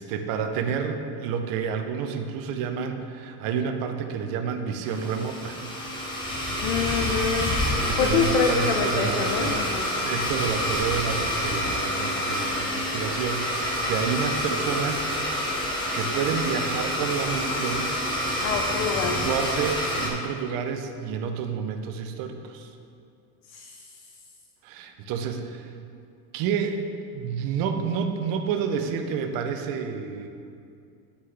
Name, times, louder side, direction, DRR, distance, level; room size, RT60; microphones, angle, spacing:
voice 1, 0.0-5.6 7.9-9.7 9.9-15.4 15.9-17.9 19.1-22.7 24.6-25.7 26.3-26.8 27.1-30.3, right 6 dB, 50° right, 6 dB, 0.7 m, -29 dB
Domestic sounds home sounds, 4.8-20.1, equal, 10° left, 0.8 m, -28 dB
voice 2, 6.6-7.6 8.0-9.9 18.4-19.3 23.5-23.8, left 6 dB, 70° left, 3 dB, 0.7 m, -26 dB
9.7 x 5.7 x 3.2 m, 2.4 s
cardioid pair, 155°, 43 cm